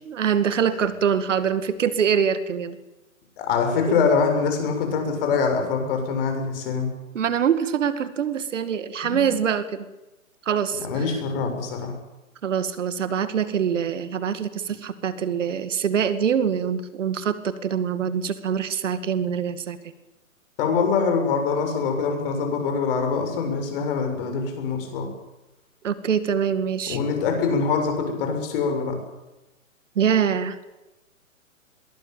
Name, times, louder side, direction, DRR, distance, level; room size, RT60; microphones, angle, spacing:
voice 1, 0.1-2.8 3.7-4.0 7.1-9.9 10.5-11.1 12.4-19.8 25.8-27.0 30.0-30.6, right 7 dB, 60° right, 12 dB, 2.2 m, -24 dB
voice 2, 3.4-6.9 9.0-9.3 10.8-11.9 20.6-25.1 26.9-29.0, left 5 dB, 40° left, 5 dB, 7.2 m, -24 dB
22.0 x 20.0 x 9.2 m, 1.0 s
hypercardioid pair, 135°, 42 cm